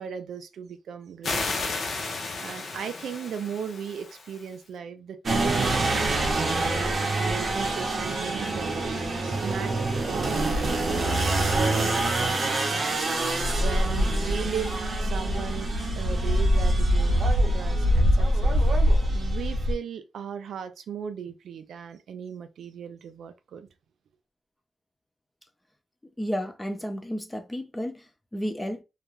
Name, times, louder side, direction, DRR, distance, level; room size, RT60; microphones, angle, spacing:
voice 1, 0.0-1.8 2.4-10.9 11.3-13.1 13.6-17.2 17.5-18.6 19.1-23.7, right 7 dB, 90° right, 0.4 m, -37 dB
sound 1, 1.2-4.5, left 3 dB, 50° left, 0.6 m, -33 dB
sound 2, 5.3-19.7, right 1 dB, 40° right, 0.7 m, -24 dB
voice 2, 26.2-28.8, equal, 10° left, 0.4 m, -32 dB
2.4 x 2.2 x 2.9 m
wide cardioid pair, 165°, 0 cm